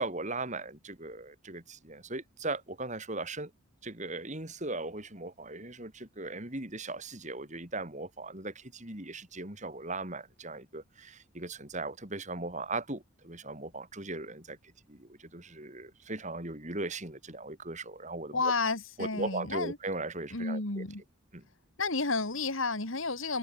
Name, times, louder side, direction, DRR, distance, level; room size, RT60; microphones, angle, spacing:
voice 1, 0.0-3.5 3.8-14.6 14.9-18.5 19.0-20.9 21.3-21.4, right 2 dB, 35° right, 3.8 m, -38 dB
voice 2, 18.3-19.8 20.3-21.0 21.8-23.4, left 3 dB, 65° left, 2.7 m, -31 dB
head